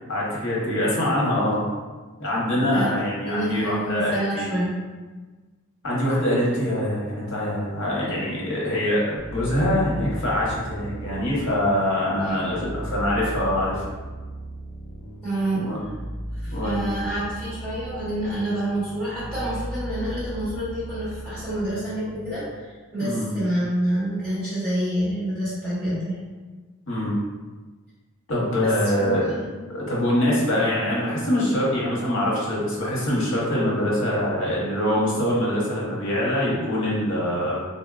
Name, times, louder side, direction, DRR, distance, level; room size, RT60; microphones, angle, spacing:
voice 1, 0.1-1.6 2.2-4.5 5.8-13.8 15.5-15.8 16.5-16.9 23.0-23.3 26.9-27.2 28.3-29.3 29.7-37.6, left 1 dB, 60° left, -5 dB, 0.9 m, -24 dB
voice 2, 3.2-4.7 12.2-12.4 15.2-15.6 16.4-26.2 28.9-29.5, right 1 dB, 15° right, -14 dB, 1.3 m, -28 dB
sound 1, 9.2-22.5, equal, 5° left, 0.9 m, -36 dB
4.1 x 2.1 x 2.3 m, 1.3 s
head